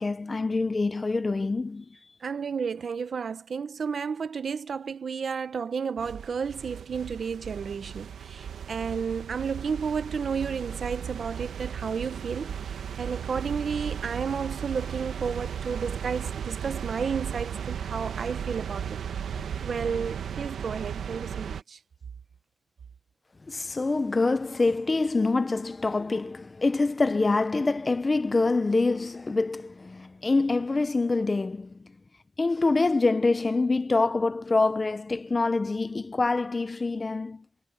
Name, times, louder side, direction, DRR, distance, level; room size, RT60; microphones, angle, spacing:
voice 1, 0.0-2.0 23.5-31.9 32.4-37.5, left 3 dB, 25° left, 0.7 m, -25 dB
voice 2, 2.2-19.0 19.3-21.8, right 6 dB, 55° right, 1.1 m, -32 dB
sound 1, 6.0-21.6, right 8 dB, 85° right, 1.5 m, -36 dB
wide cardioid pair, 135°, 0 cm